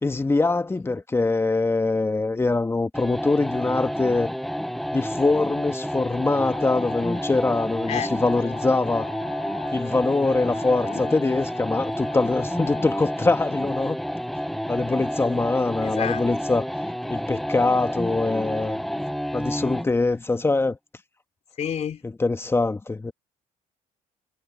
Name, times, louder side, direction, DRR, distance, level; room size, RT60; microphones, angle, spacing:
voice 1, 0.0-4.3 4.9-9.1 9.7-14.0 14.7-16.7 17.1-18.8 19.3-20.8 22.0-23.1, left 3 dB, 15° left, 1.8 m, -23 dB
sound 1, 2.9-20.0, equal, ahead, 1.0 m, -30 dB
Wind instrument woodwind instrument, 6.4-14.0, left 13 dB, 70° left, 8.0 m, -44 dB
voice 2, 15.8-16.2 21.6-22.0, left 8 dB, 50° left, 3.3 m, -29 dB
cardioid pair, 95°, 14 cm